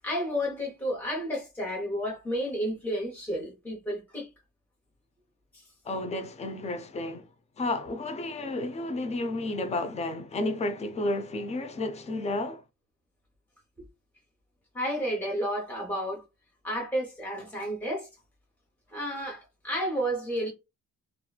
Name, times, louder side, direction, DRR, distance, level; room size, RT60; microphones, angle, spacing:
voice 1, 0.0-4.3 5.5-5.6 14.7-16.2 16.6-18.1 18.9-20.5, equal, 5° left, 0.9 m, -31 dB
voice 2, 5.8-7.3 7.6-12.6, left 2 dB, 20° left, 0.4 m, -32 dB
2.9 x 2.5 x 2.2 m
cardioid pair, 115°, 31 cm